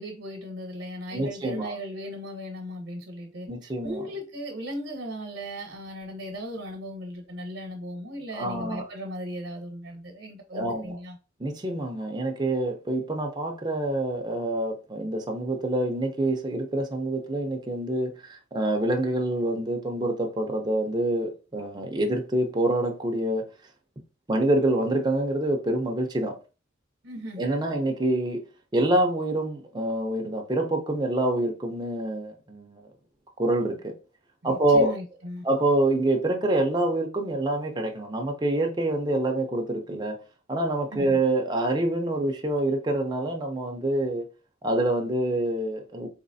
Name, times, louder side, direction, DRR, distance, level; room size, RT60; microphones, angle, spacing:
voice 1, 0.0-11.2 27.0-27.4 34.4-35.4 40.9-41.2, equal, 75° right, 0.8 m, -37 dB
voice 2, 1.1-1.7 3.5-4.2 8.3-8.9 10.5-10.9 11.4-23.5 24.3-26.4 27.4-28.4 28.7-32.8 33.4-33.9 34.4-35.0 35.4-40.2 40.5-44.3 44.6-46.1, right 1 dB, 20° right, 0.5 m, -26 dB
4.0 x 2.9 x 2.6 m
head